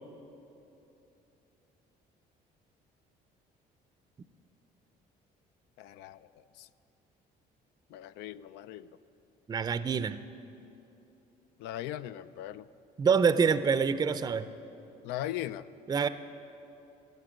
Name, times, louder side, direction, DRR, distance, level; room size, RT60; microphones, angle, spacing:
voice 1, 5.8-6.7 7.9-9.0 11.6-12.7 15.0-15.7, left 13 dB, 90° left, 15 dB, 0.4 m, -39 dB
voice 2, 9.5-10.2 13.0-14.5 15.9-16.1, right 6 dB, 25° right, 13 dB, 0.4 m, -26 dB
14.5 x 8.0 x 8.8 m, 2.9 s
cardioid pair, 110°, 17 cm